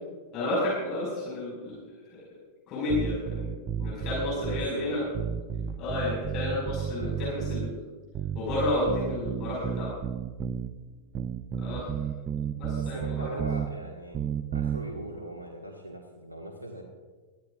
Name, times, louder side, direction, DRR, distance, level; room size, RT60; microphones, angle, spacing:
voice 1, 0.3-1.8 2.1-2.2 2.7-3.5 3.8-5.0 5.8-7.7 8.3-9.9 11.6-11.9 12.6-13.3, left 2 dB, 35° left, -4 dB, 5.1 m, -31 dB
sound 1, 2.9-4.7 5.1-7.8 8.1-10.7 11.1-13.7 14.1-14.8, right 8 dB, 30° right, 0.6 m, -32 dB
voice 2, 4.3-5.0 6.9-7.5 12.7-14.2 14.5-16.8, equal, 85° right, 1 dB, 1.5 m, -40 dB
21.0 x 15.0 x 2.4 m, 1.4 s
figure-of-eight pair, 90°, 0 cm